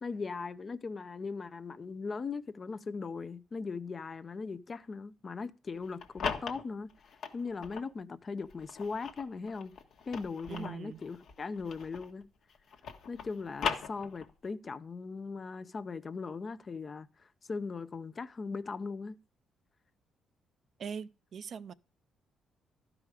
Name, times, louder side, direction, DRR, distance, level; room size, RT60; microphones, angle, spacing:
voice 1, 0.0-6.9 7.3-9.7 10.1-12.3 13.1-19.2, left 4 dB, 35° left, 0.5 m, -39 dB
sound 1, 5.8-7.9 8.5-12.2 12.5-14.5, left 6 dB, 70° left, 1.2 m, -39 dB
voice 2, 10.5-11.0 20.8-21.7, right 7 dB, 55° right, 0.4 m, -41 dB
12.0 x 5.0 x 4.8 m
cardioid pair, 90°, 0 cm